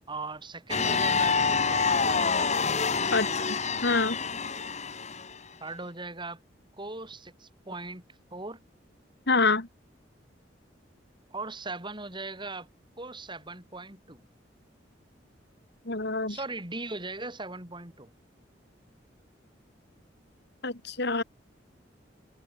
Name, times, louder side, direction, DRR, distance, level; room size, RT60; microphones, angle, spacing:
voice 1, 0.1-2.6 3.3-3.5 5.6-6.4 6.8-8.0 8.3-8.6 11.3-12.7 13.0-14.3 16.3-18.1, right 3 dB, 25° right, 7.3 m, -39 dB
sound 1, 0.7-5.4, left 5 dB, 40° left, 3.8 m, -27 dB
voice 2, 3.8-4.2 9.3-9.7 15.9-16.4 20.6-21.2, left 3 dB, 65° left, 3.5 m, -26 dB
head